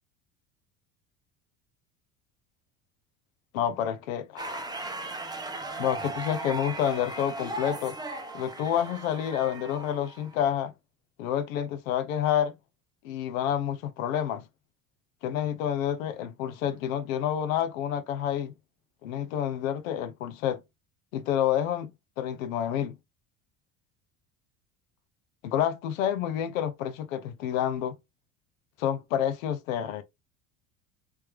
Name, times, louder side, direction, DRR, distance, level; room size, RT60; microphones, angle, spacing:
voice 1, 3.5-4.8 5.8-8.0 8.3-10.7 11.2-12.5 13.0-14.5 15.2-18.5 19.0-20.6 21.1-21.9 22.2-23.0 25.4-27.9 28.8-30.0, left 10 dB, 90° left, 0.7 m, -29 dB
sound 1, 4.4-10.5, right 2 dB, 10° right, 0.7 m, -37 dB
3.3 x 3.3 x 3.0 m
supercardioid pair, 85°, 39 cm